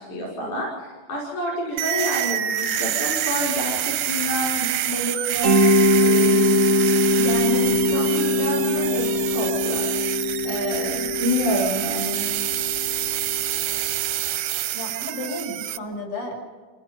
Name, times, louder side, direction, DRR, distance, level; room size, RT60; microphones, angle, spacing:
voice 1, 0.0-5.6 6.0-6.6 7.1-9.9 10.4-12.2, equal, 70° left, -3 dB, 6.7 m, -28 dB
sound 1, 1.8-15.8, right 13 dB, 90° right, 2.4 m, -27 dB
Mallet percussion, 5.4-14.2, left 1 dB, 75° right, 0.7 m, -22 dB
voice 2, 14.7-16.4, left 1 dB, 90° left, -2 dB, 8.6 m, -32 dB
28.0 x 18.5 x 5.8 m, 1.5 s
omnidirectional pair, 3.6 m